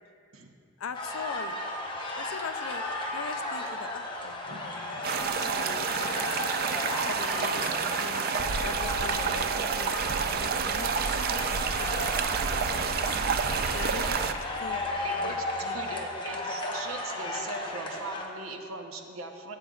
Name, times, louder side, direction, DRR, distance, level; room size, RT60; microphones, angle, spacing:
voice 1, 0.8-1.6 2.2-6.5 6.8-10.0 10.3-13.2 13.7-14.9 15.2-15.4 15.6-15.8, left 6 dB, 75° left, 10 dB, 0.4 m, -42 dB
sound 1, 0.9-18.3, left 2 dB, 25° left, 0.9 m, -35 dB
sound 2, 5.0-14.3, right 6 dB, 45° right, 0.4 m, -29 dB
sound 3, 12.0-17.4 17.7-17.9, left 1 dB, 5° right, 1.1 m, -52 dB
voice 2, 15.0-15.4 15.7-19.6, right 3 dB, 80° right, 4 dB, 0.8 m, -39 dB
15.0 x 7.9 x 2.4 m, 2.5 s
head